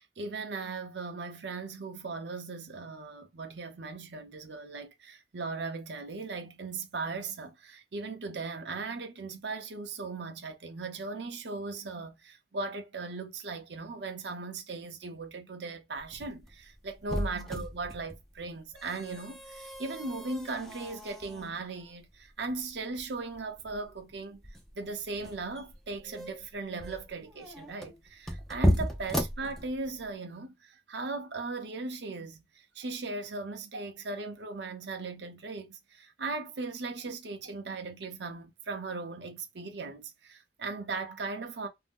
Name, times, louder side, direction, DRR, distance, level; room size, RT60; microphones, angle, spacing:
voice 1, 0.0-41.7, right 3 dB, 70° right, 0.7 m, -38 dB
sound 1, 16.0-30.1, equal, ahead, 0.5 m, -36 dB
2.7 x 2.0 x 3.5 m
head